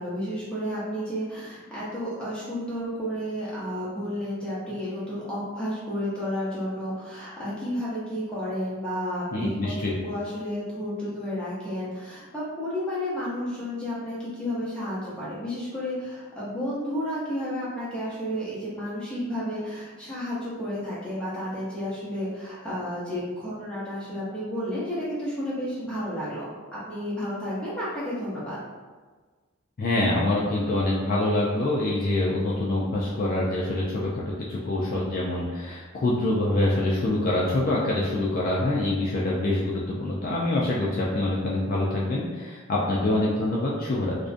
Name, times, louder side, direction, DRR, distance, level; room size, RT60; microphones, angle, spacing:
voice 1, 0.0-9.7 10.0-28.6, equal, 5° left, -10 dB, 0.8 m, -32 dB
voice 2, 9.3-10.0 29.8-44.2, left 1 dB, 45° left, -5 dB, 0.3 m, -25 dB
2.4 x 2.1 x 2.5 m, 1.4 s
head